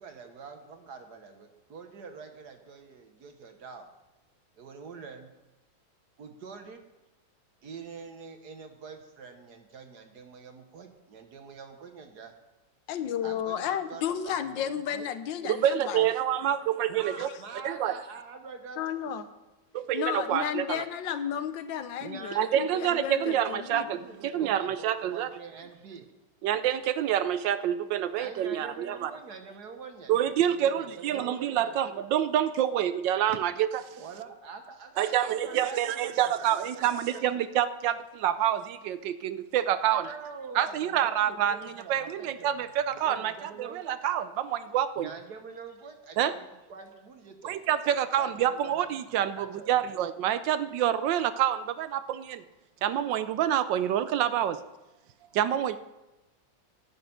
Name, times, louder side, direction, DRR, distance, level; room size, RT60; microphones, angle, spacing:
voice 1, 0.0-3.9 4.6-5.3 6.2-6.8 7.6-12.3 13.2-15.1 16.9-19.1 22.0-26.1 28.2-30.1 30.4-31.8 34.0-37.3 39.8-44.0 45.0-48.9 49.1-50.0, right 5 dB, 60° right, 6 dB, 1.7 m, -45 dB
voice 2, 12.9-16.0 17.2-17.3 18.8-19.3 19.9-23.9, left 9 dB, 75° left, 11 dB, 1.5 m, -33 dB
voice 3, 15.4-17.3 17.6-17.9 19.7-20.8 22.4-24.0 24.2-25.3 26.4-29.1 30.1-33.9 35.0-40.1 40.5-45.1 46.2-46.3 47.4-52.4 52.8-54.6 55.3-55.8, right 10 dB, 75° right, 13 dB, 1.2 m, -27 dB
11.0 x 6.5 x 9.1 m, 1.0 s
omnidirectional pair, 2.1 m